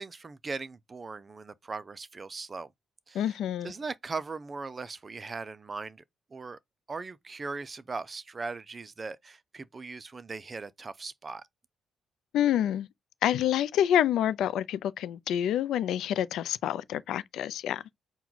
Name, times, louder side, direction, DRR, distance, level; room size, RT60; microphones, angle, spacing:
voice 1, 0.0-2.7 3.1-3.4 3.6-6.0 6.3-6.6 6.9-11.4, right 4 dB, 30° right, 0.4 m, -39 dB
voice 2, 3.1-3.7 12.3-12.9 13.2-17.8, left 10 dB, 80° left, 0.3 m, -27 dB
4.5 x 2.2 x 3.9 m
cardioid pair, 90°, 0 cm